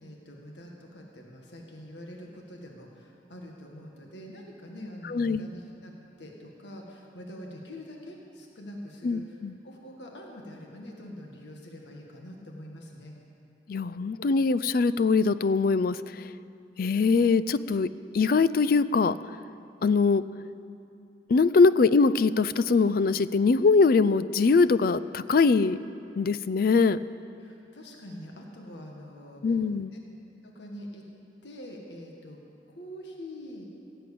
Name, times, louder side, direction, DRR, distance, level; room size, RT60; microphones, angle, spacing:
voice 1, 0.0-5.9 6.2-9.4 9.6-13.1 27.4-29.6 30.4-31.0 31.4-32.4 32.7-33.6, equal, 75° left, 0 dB, 1.7 m, -44 dB
voice 2, 5.1-5.5 9.0-9.5 13.7-16.3 16.8-17.9 18.1-19.1 19.8-20.2 21.3-25.8 26.2-27.0 29.4-29.9, left 4 dB, 50° left, 15 dB, 0.4 m, -22 dB
16.0 x 7.7 x 8.5 m, 2.6 s
head